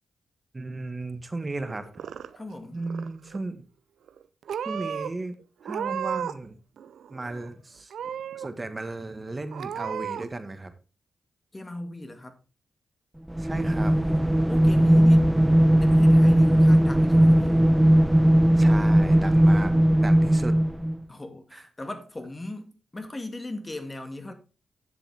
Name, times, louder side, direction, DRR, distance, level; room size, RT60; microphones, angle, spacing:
voice 1, 0.5-2.0 2.7-3.6 4.6-5.4 5.6-6.6 7.1-7.9 8.3-10.7 13.4-13.9 18.6-19.7 20.0-20.6 21.5-21.6, right 2 dB, 30° right, 1.4 m, -35 dB
Purr / Meow, 1.7-2.6 2.8-3.4 4.1-4.2 4.5-5.1 5.6-6.5 6.8-7.5 7.9-8.5 8.9-9.0 9.5-10.3, right 8 dB, 80° right, 0.5 m, -34 dB
voice 2, 2.4-2.8 11.5-12.4 13.6-15.3 15.8-17.6 21.1-24.3, left 1 dB, 25° left, 1.9 m, -38 dB
sound 1, 13.3-21.0, right 1 dB, 10° right, 0.6 m, -18 dB
10.5 x 7.0 x 3.5 m
cardioid pair, 55°, 0 cm